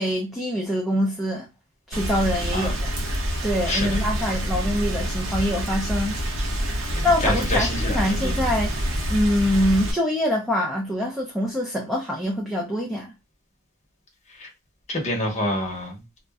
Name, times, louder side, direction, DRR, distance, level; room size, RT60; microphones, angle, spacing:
voice 1, 0.0-1.5 1.9-2.7 3.4-6.2 7.0-8.7 9.1-13.1, equal, ahead, 0.5 m, -24 dB
Rain, 1.9-9.9, equal, 65° right, 0.8 m, -27 dB
voice 2, 3.7-4.0 7.0-8.5 14.3-14.5 14.9-16.0, left 1 dB, 35° left, 0.9 m, -28 dB
2.5 x 2.2 x 3.4 m
head